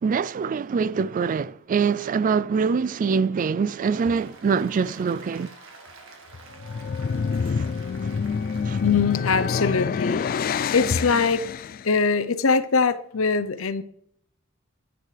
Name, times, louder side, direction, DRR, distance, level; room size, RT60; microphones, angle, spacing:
voice 1, 0.0-5.5 7.4-7.6 8.7-8.8, right 5 dB, 40° right, 0.3 m, -24 dB
Applause, 3.7-10.5, right 3 dB, 70° right, 1.9 m, -48 dB
sound 1, 6.5-11.9, left 5 dB, 45° left, 0.3 m, -27 dB
voice 2, 8.8-11.4 11.8-13.8, left 5 dB, 75° left, 0.7 m, -22 dB
11.0 x 9.9 x 3.3 m
head